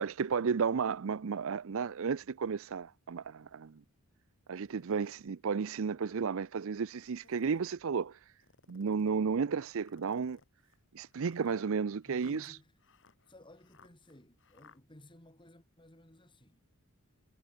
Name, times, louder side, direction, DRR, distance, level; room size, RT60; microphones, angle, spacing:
voice 1, 0.0-3.8 4.5-8.2 8.7-10.4 10.9-12.5, right 5 dB, 60° right, 0.5 m, -33 dB
sound 1, 4.6-5.3 5.9-6.0 7.0-7.7 8.4-9.2 9.8-14.8, left 4 dB, 60° left, 4.7 m, -62 dB
voice 2, 12.0-12.7 13.3-16.6, left 1 dB, 20° left, 4.4 m, -56 dB
head